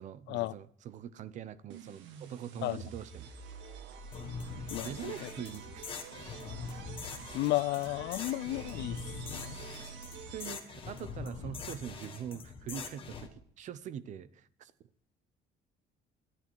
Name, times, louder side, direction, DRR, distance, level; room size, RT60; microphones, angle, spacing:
voice 1, 0.0-3.3 4.8-6.0 10.3-14.7, right 9 dB, 40° right, 0.6 m, -43 dB
sound 1, 1.7-10.8, right 6 dB, 85° right, 1.7 m, -47 dB
sound 2, 4.1-13.3, left 5 dB, 30° left, 1.5 m, -43 dB
voice 2, 4.7-5.3 7.3-9.0 9.3-9.6, left 18 dB, 65° left, 0.4 m, -33 dB
12.0 x 9.7 x 4.6 m
cardioid pair, 175°, 19 cm